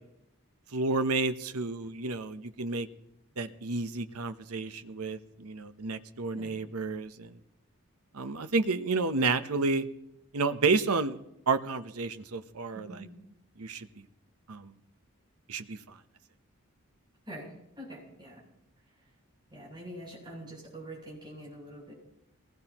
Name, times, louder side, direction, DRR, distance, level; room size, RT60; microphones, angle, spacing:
voice 1, 0.7-2.9 3.4-7.3 8.1-9.8 10.3-11.2 11.5-13.1 13.6-13.9 14.5-14.7 15.5-15.8, right 3 dB, 80° right, 10 dB, 0.9 m, -30 dB
voice 2, 12.7-13.1 17.3-17.5 17.8-18.4 19.5-21.9, right 1 dB, 20° right, -4 dB, 7.8 m, -44 dB
22.0 x 19.5 x 3.0 m, 0.83 s
head